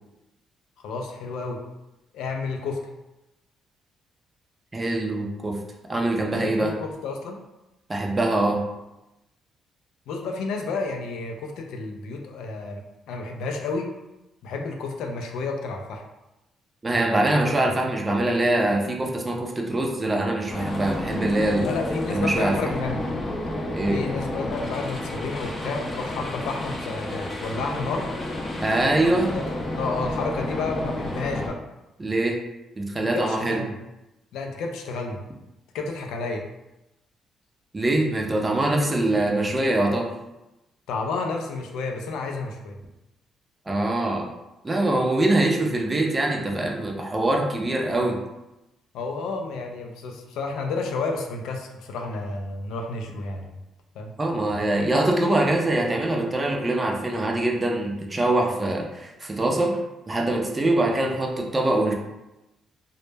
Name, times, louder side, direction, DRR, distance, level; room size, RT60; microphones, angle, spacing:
voice 1, 0.8-1.6 2.1-2.8 6.3-7.4 10.1-13.9 14.4-16.0 21.6-23.0 23.9-28.1 29.6-31.6 33.0-33.7 34.3-35.2 35.7-36.4 38.8-38.9 40.9-42.8 48.9-53.6 54.0-54.1, left 3 dB, 90° left, 3 dB, 0.3 m, -31 dB
voice 2, 4.7-5.6 5.9-6.7 7.9-8.6 16.8-21.7 22.1-22.7 23.7-24.0 28.6-29.3 32.0-32.4 32.8-33.6 37.7-40.1 43.7-44.3 44.6-48.2 54.2-59.8 60.1-61.9, right 1 dB, 25° right, 1 dB, 0.4 m, -23 dB
sound 1, 20.5-31.5, left 1 dB, 35° left, 0.5 m, -31 dB
2.0 x 2.0 x 3.2 m, 0.96 s
cardioid pair, 90°, 0 cm